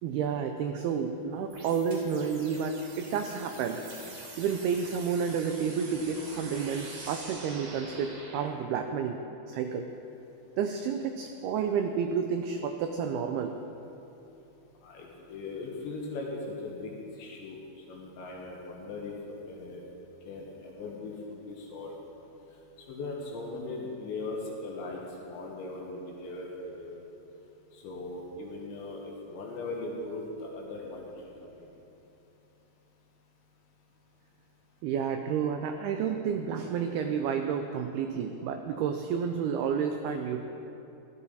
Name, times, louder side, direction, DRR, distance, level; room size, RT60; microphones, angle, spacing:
voice 1, 0.0-3.8 4.4-9.2 9.5-9.9 10.6-13.5 34.8-40.4, right 6 dB, 85° right, 6 dB, 2.2 m, -30 dB
sound 1, 1.5-8.5, right 2 dB, 50° right, 4.6 m, -45 dB
voice 2, 14.8-16.9 17.2-17.6 17.9-19.8 20.3-21.1 21.4-22.0 22.9-27.0 27.8-29.0 29.3-31.0, left 2 dB, 75° left, -2 dB, 3.9 m, -39 dB
17.5 x 14.0 x 4.2 m, 3.0 s
omnidirectional pair, 5.2 m